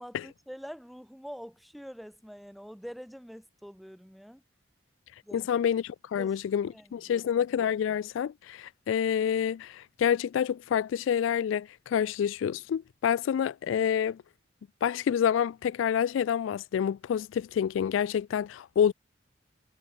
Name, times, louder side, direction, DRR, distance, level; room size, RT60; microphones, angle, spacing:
voice 1, 0.0-4.4 5.2-5.5 6.2-6.4 6.7-7.4, equal, ahead, 6.7 m, -45 dB
voice 2, 5.3-14.2 14.8-18.9, left 8 dB, 85° left, 0.3 m, -28 dB
head